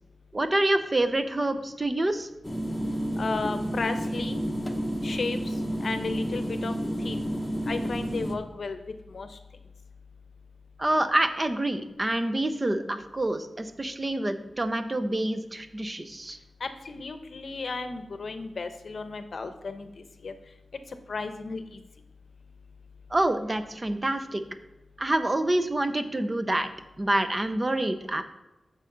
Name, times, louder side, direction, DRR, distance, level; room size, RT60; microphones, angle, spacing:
voice 1, 0.3-2.3 10.8-16.4 23.1-24.4 25.0-26.7 27.0-28.2, right 1 dB, 25° right, 9 dB, 0.6 m, -27 dB
sound 1, 2.4-8.3, equal, 15° left, 0.9 m, -30 dB
voice 2, 3.2-4.4 5.0-5.4 5.8-6.7 7.0-7.2 7.7-8.8 9.1-9.3 16.6-19.9 20.2-20.3 21.1-21.6, left 4 dB, 60° left, 9 dB, 0.8 m, -33 dB
8.8 x 6.2 x 3.9 m, 1.0 s
wide cardioid pair, 125°, 0 cm